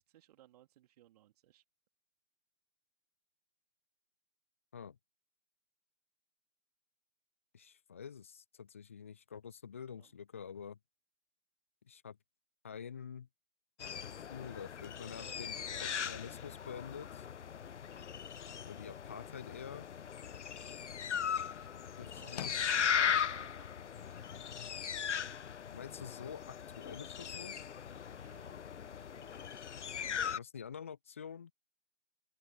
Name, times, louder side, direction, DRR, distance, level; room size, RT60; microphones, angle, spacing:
voice 1, 0.0-1.6 10.0-10.1 15.0-16.4 21.5-21.7 22.0-24.4 28.1-28.6 28.9-29.6, right 13 dB, 30° right, 3.0 m, -62 dB
voice 2, 7.5-10.8 11.9-12.2 12.6-13.3 14.2-15.5 15.8-17.3 18.7-19.9 22.0-22.6 25.7-27.6 30.4-31.5, left 7 dB, 10° left, 0.5 m, -47 dB
sound 1, 13.8-30.4, left 8 dB, 65° left, 0.6 m, -38 dB
sound 2, 20.3-30.1, left 12 dB, 30° left, 1.8 m, -57 dB
figure-of-eight pair, 135°, 38 cm